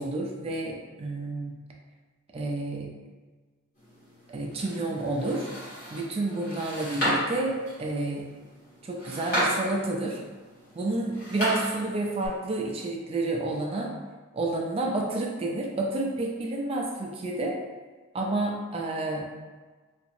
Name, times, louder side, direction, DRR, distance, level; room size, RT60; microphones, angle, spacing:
voice 1, 0.0-1.5 2.3-2.9 4.3-5.5 5.9-8.3 8.8-10.2 10.8-13.9 14.3-17.6 18.1-19.3, right 2 dB, 25° right, 0 dB, 0.3 m, -30 dB
sound 1, 3.8-12.3, equal, 45° left, 1.4 m, -34 dB
2.8 x 2.5 x 2.5 m, 1.4 s
head